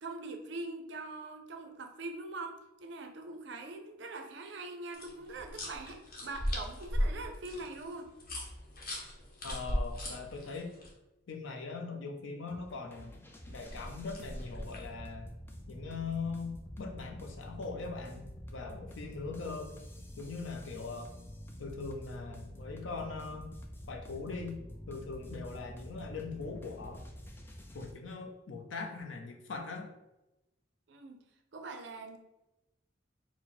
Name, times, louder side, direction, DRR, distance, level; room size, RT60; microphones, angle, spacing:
voice 1, 0.0-8.1 30.9-31.2 31.5-32.2, right 2 dB, 70° right, 4 dB, 0.5 m, -43 dB
sound 1, 4.9-10.9 13.5-14.9, equal, 50° left, 0.9 m, -37 dB
voice 2, 9.4-10.7 11.3-13.2 13.5-15.3 15.7-19.7 20.2-21.1 21.6-23.5 23.9-24.6 24.9-27.0 27.7-29.9, left 4 dB, 85° left, 3 dB, 0.6 m, -41 dB
sound 2, 12.5-27.9, equal, 10° left, 0.3 m, -48 dB
4.4 x 2.0 x 4.2 m, 0.97 s
head